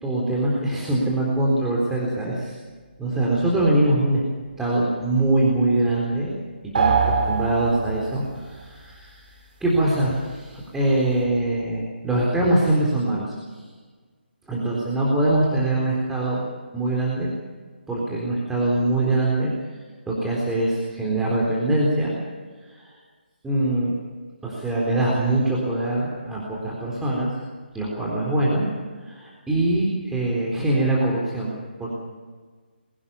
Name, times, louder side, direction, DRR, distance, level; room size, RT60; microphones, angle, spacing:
voice 1, 0.0-2.6 3.0-4.2 4.6-6.3 6.8-9.3 9.6-13.3 14.5-17.3 17.9-19.5 20.1-22.1 22.6-22.9 23.4-23.9 24.4-27.3 27.7-28.7 29.0-31.5 31.8-31.9, right 1 dB, 5° right, -4 dB, 3.9 m, -23 dB
sound 1, 6.7-8.3, right 5 dB, 50° right, 3.6 m, -22 dB
22.5 x 18.0 x 7.2 m, 1.4 s
figure-of-eight pair, 150°, 6 cm